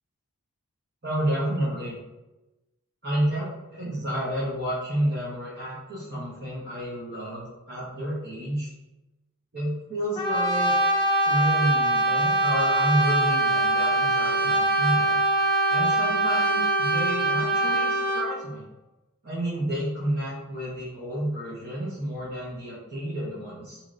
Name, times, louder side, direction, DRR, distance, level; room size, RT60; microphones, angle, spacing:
voice 1, 1.0-2.0 3.0-8.7 9.5-10.7 11.2-15.2 15.7-18.6 19.2-23.8, right 1 dB, 45° right, -10 dB, 0.8 m, -30 dB
Brass instrument, 10.2-18.3, right 2 dB, 20° left, 0.5 m, -23 dB
2.9 x 2.9 x 2.5 m, 1.0 s
head